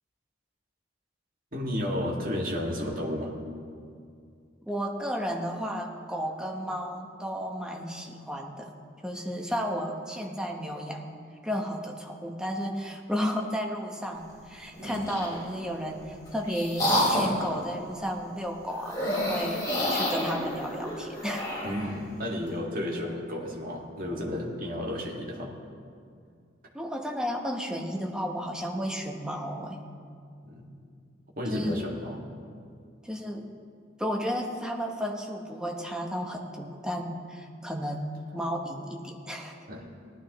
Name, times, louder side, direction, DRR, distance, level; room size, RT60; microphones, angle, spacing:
voice 1, 1.5-3.3 21.6-25.5 30.4-30.6 31.4-32.2 39.7-39.9, left 1 dB, 50° right, -2 dB, 2.0 m, -32 dB
voice 2, 4.6-8.7 9.0-11.1 11.4-21.7 26.7-29.8 31.5-31.8 33.0-33.5 34.0-39.6, equal, 5° right, 1 dB, 1.0 m, -33 dB
sound 1, 14.7-15.4 16.0-17.5 18.8-21.9, equal, 20° left, 3.7 m, -29 dB
18.0 x 12.5 x 3.1 m, 2.3 s
head